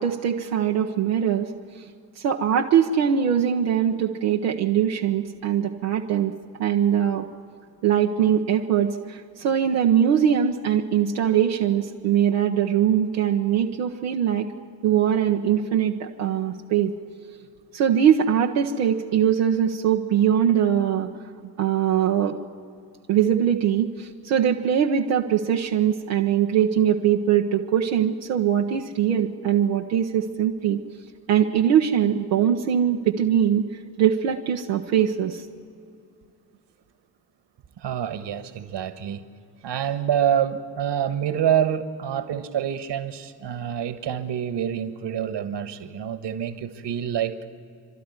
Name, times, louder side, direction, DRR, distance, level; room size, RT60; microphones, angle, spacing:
voice 1, 0.0-1.5 2.2-7.3 7.8-14.5 14.8-17.0 17.7-21.1 21.6-22.4 23.1-30.8 31.3-33.6 34.0-35.5, right 9 dB, 85° right, 0 dB, 0.9 m, -22 dB
voice 2, 37.8-39.2 39.6-47.3, right 9 dB, 60° right, 11 dB, 1.5 m, -26 dB
29.0 x 12.5 x 9.6 m, 2.4 s
hypercardioid pair, 45°, 48 cm